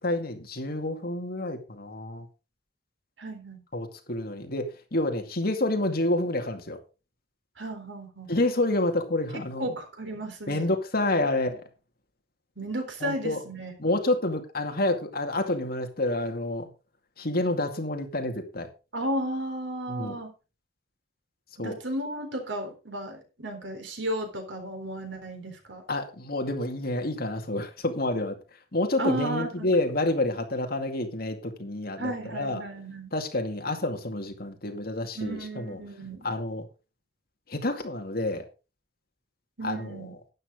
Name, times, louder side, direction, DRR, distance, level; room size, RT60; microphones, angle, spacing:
voice 1, 0.0-2.3 3.7-6.8 8.3-9.7 10.5-11.6 13.0-13.4 13.8-16.7 17.2-18.7 19.9-20.2 21.6-21.7 25.9-28.4 28.7-32.6 33.1-35.8 36.2-36.7 37.5-38.4 39.6-40.1, left 2 dB, 55° left, 5 dB, 2.3 m, -28 dB
voice 2, 3.2-3.6 7.6-8.3 9.3-10.7 12.6-13.7 18.9-20.3 21.6-25.8 29.0-29.7 32.0-33.1 35.1-36.3 39.6-40.1, right 1 dB, 80° right, 5 dB, 3.9 m, -34 dB
12.0 x 10.0 x 3.7 m, 0.31 s
head